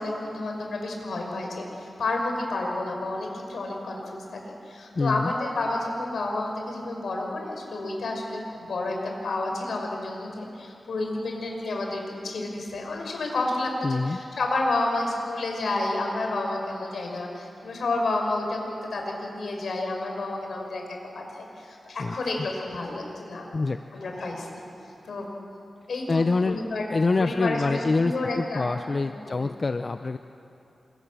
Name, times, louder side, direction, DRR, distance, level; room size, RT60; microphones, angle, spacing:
voice 1, 0.0-4.4 4.7-23.5 23.9-24.6 25.0-25.3 25.9-26.8 27.2-28.7 29.0-29.4, left 2 dB, 75° left, 1 dB, 5.7 m, -30 dB
voice 2, 5.0-5.3 13.8-14.2 22.0-22.1 23.5-23.8 26.1-26.6 26.9-30.2, left 3 dB, 45° left, 8 dB, 0.7 m, -25 dB
28.5 x 24.5 x 7.5 m, 2.7 s
wide cardioid pair, 95°, 0 cm